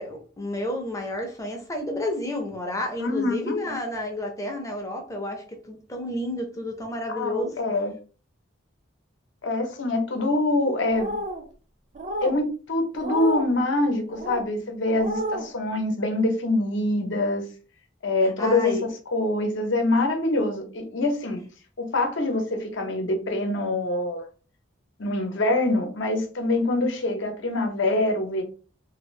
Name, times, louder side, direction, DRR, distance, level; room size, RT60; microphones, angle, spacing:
voice 1, 0.0-7.5 18.4-18.8, left 1 dB, 15° left, 0.6 m, -31 dB
voice 2, 3.0-3.7 7.1-7.9 9.4-11.1 12.2-17.4 18.0-21.4 21.8-24.2 25.0-28.4, left 2 dB, 65° left, 0.8 m, -25 dB
sound 1, 10.9-11.4 11.9-12.4 13.0-13.5 14.1-14.5 14.9-15.5, right 1 dB, 35° right, 0.5 m, -31 dB
2.7 x 2.5 x 3.1 m
head